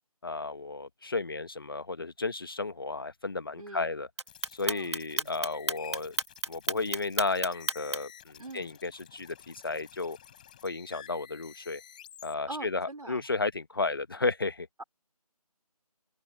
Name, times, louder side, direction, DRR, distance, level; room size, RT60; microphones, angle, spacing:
voice 1, 0.2-4.1 4.5-6.1 6.5-10.2 10.6-11.8 12.2-14.7, left 3 dB, 35° left, 1.5 m, -33 dB
voice 2, 3.6-3.9 4.7-5.3 8.4-8.7 12.5-13.2, right 2 dB, 70° right, 5.1 m, -43 dB
Clock, 4.2-8.2, right 3 dB, 45° right, 1.4 m, -31 dB
sound 1, 4.3-12.3, left 10 dB, 15° left, 3.8 m, -52 dB
open air
figure-of-eight pair, 170°, 19 cm